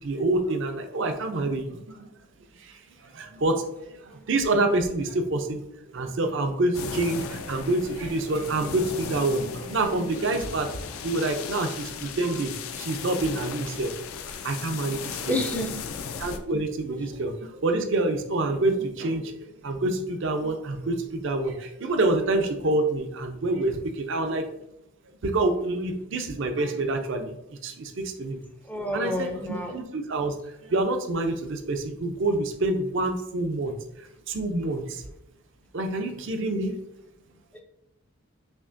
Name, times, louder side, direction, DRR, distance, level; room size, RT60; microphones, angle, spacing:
voice 1, 0.0-2.1 2.6-5.6 5.9-10.8 11.0-13.9 14.4-15.4 16.2-24.5 25.2-28.4 28.9-30.3 30.6-35.0 35.7-36.8, right 2 dB, 55° right, 5 dB, 0.5 m, -27 dB
sound 1, 6.7-16.4, left 6 dB, 70° left, 0.4 m, -36 dB
voice 2, 15.3-15.8 28.7-29.8 37.5-37.6, left 1 dB, 5° left, 2 dB, 0.4 m, -29 dB
5.7 x 2.8 x 2.6 m, 0.84 s
head